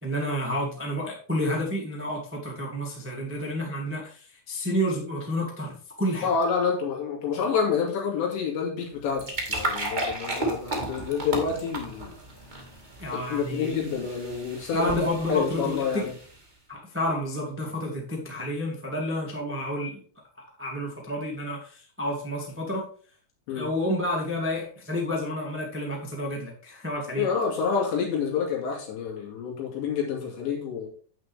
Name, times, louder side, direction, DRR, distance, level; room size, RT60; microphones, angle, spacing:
voice 1, 0.0-6.3 13.0-13.7 14.7-16.1 16.7-20.0 20.6-22.9 23.5-27.3, left 1 dB, 5° right, 0.8 m, -30 dB
voice 2, 6.2-12.2 13.1-16.1 23.5-23.7 27.2-30.9, left 6 dB, 75° left, 4.8 m, -28 dB
sound 1, 8.9-16.5, right 1 dB, 60° right, 0.4 m, -34 dB
9.1 x 8.5 x 3.5 m
omnidirectional pair, 5.2 m